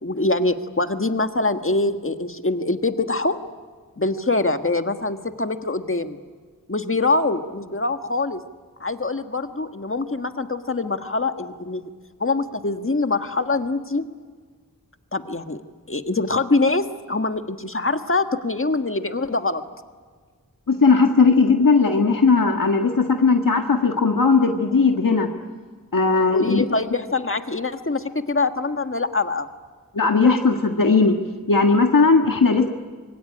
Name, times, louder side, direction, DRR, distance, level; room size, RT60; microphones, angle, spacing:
voice 1, 0.0-3.4 4.0-6.2 6.7-8.4 8.8-11.9 12.2-14.0 15.1-15.6 15.9-19.6 26.3-29.5, left 3 dB, 40° left, 7 dB, 1.6 m, -24 dB
voice 2, 20.7-25.3 25.9-26.6 29.9-31.2 31.5-32.7, left 4 dB, 70° left, 3 dB, 1.7 m, -17 dB
26.0 x 22.5 x 9.9 m, 1.5 s
wide cardioid pair, 60°, 34 cm